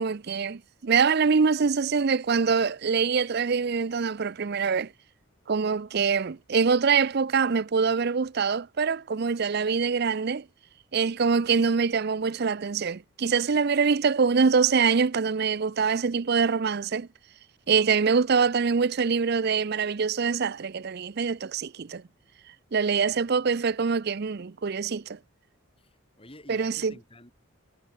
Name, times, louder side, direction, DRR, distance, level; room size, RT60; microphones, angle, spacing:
voice 1, 0.0-4.9 5.5-10.5 10.9-17.1 17.7-22.0 22.7-25.2 26.5-26.9, right 5 dB, 50° right, 0.5 m, -24 dB
voice 2, 23.0-23.7 25.8-27.3, left 1 dB, 25° left, 4.1 m, -51 dB
head